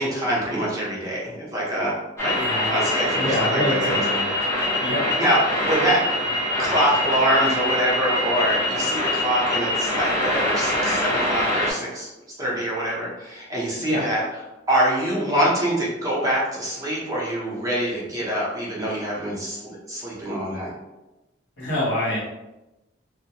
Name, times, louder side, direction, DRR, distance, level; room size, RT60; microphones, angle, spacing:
voice 1, 0.0-2.4 2.7-4.0 5.2-6.0 6.6-12.1 12.4-14.2 14.7-20.7, right 1 dB, 20° right, -6 dB, 0.7 m, -25 dB
sound 1, 2.2-11.7, left 1 dB, 15° left, 0.8 m, -24 dB
voice 2, 2.3-2.7 3.1-4.3 4.8-5.0 13.8-14.1 21.6-22.2, left 1 dB, 70° left, -7 dB, 1.0 m, -26 dB
2.2 x 2.1 x 2.8 m, 1.0 s
head